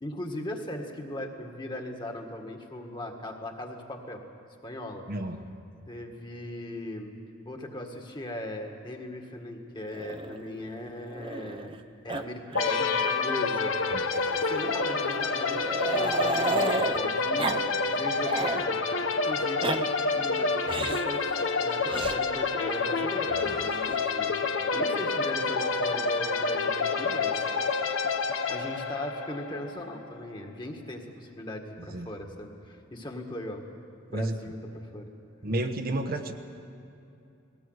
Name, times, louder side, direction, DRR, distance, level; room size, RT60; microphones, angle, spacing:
voice 1, 0.0-4.2 4.6-5.1 5.9-7.2 7.5-11.7 12.0-13.7 14.3-16.6 16.9-17.5 17.9-18.8 19.2-24.3 24.7-27.4 27.6-27.8 28.5-33.6 34.1-35.1, left 1 dB, 25° left, 3 dB, 1.8 m, -38 dB
Growling, 9.9-11.8 12.1-12.2 12.5-12.7 13.0-13.1 14.1-17.0 17.4-17.6 18.0-18.7 19.4-19.8 20.7-21.1 21.9-22.2 23.3-24.0, right 3 dB, 25° right, 0.7 m, -33 dB
sound 1, 12.5-30.2, left 4 dB, 80° left, 1.2 m, -28 dB
voice 2, 35.4-36.3, right 1 dB, 50° right, 6 dB, 1.1 m, -30 dB
20.0 x 17.5 x 8.1 m, 2.7 s
head